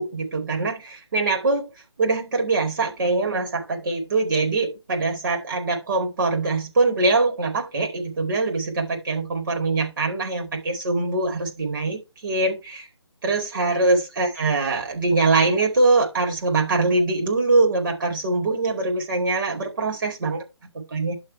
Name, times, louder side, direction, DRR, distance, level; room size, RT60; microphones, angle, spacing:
voice 1, 0.0-1.6 2.0-12.8 13.2-20.4 20.7-21.1, right 3 dB, 45° right, 4.4 m, -23 dB
11.5 x 4.2 x 4.6 m
figure-of-eight pair, 160°, 15 cm